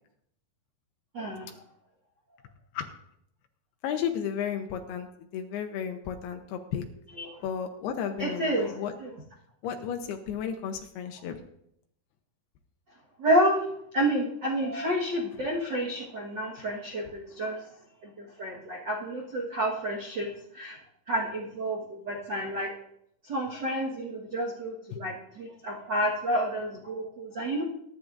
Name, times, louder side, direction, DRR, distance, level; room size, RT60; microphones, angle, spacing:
voice 1, 1.1-1.5 7.2-7.4 8.2-8.7 9.0-9.1 13.2-13.6 13.9-17.6 18.0-20.3 20.5-20.8 21.1-22.7 23.2-27.6, right 1 dB, 80° right, -2 dB, 1.0 m, -29 dB
voice 2, 3.8-5.1 5.3-6.9 7.4-8.9 9.6-11.4 24.9-25.0, left 8 dB, 80° left, 5 dB, 2.8 m, -33 dB
22.0 x 10.5 x 2.6 m, 0.73 s
omnidirectional pair, 4.5 m